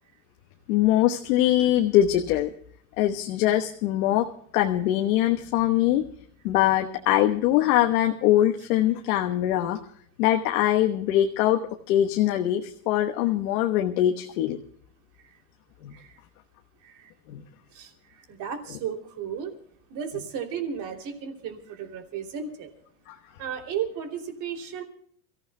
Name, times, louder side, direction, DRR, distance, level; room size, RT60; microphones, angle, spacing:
voice 1, 0.7-2.5 3.0-4.3 4.5-6.0 6.4-9.8 10.2-11.6 11.9-14.6 15.8-15.9 17.3-17.4 23.1-23.2, left 13 dB, 75° left, 4 dB, 1.3 m, -22 dB
voice 2, 16.8-17.1 17.7-19.6 19.9-22.7 23.4-24.8, right 7 dB, 40° right, 3 dB, 3.0 m, -34 dB
29.5 x 15.0 x 2.2 m, 0.62 s
supercardioid pair, 150°, 44 cm